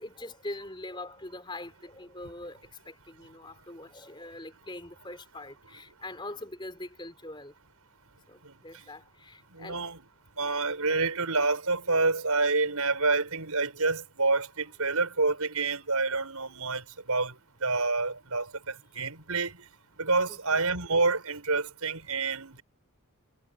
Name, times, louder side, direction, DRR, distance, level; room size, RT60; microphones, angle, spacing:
voice 1, 0.0-7.5 8.3-9.8 20.3-20.6, left 2 dB, 20° left, 4.2 m, -43 dB
voice 2, 9.6-10.0 10.4-17.3 17.6-18.5 18.9-19.5 20.0-22.6, right 3 dB, 85° right, 7.2 m, -28 dB
head